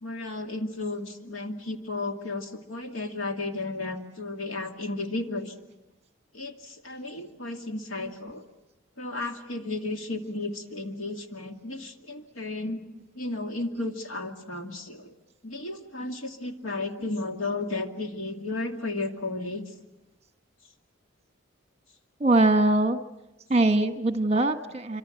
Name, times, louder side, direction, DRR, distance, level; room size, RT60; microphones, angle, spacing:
voice 1, 0.0-5.5 6.3-8.5 9.0-12.8 13.1-15.1 15.4-19.6, left 2 dB, 90° left, 4 dB, 2.4 m, -33 dB
voice 2, 22.2-23.0 23.5-25.0, right 2 dB, 30° right, 8 dB, 1.4 m, -22 dB
26.0 x 25.5 x 7.8 m, 1.0 s
head